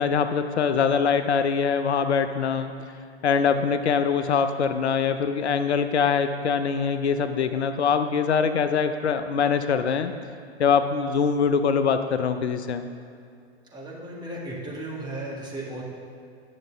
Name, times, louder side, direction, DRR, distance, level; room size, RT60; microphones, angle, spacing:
voice 1, 0.0-2.7 3.2-10.1 10.6-12.9, left 6 dB, 75° left, 9 dB, 0.6 m, -23 dB
voice 2, 13.7-15.8, right 1 dB, 10° right, -4 dB, 1.7 m, -35 dB
10.5 x 6.4 x 3.9 m, 2.4 s
figure-of-eight pair, 105°, 34 cm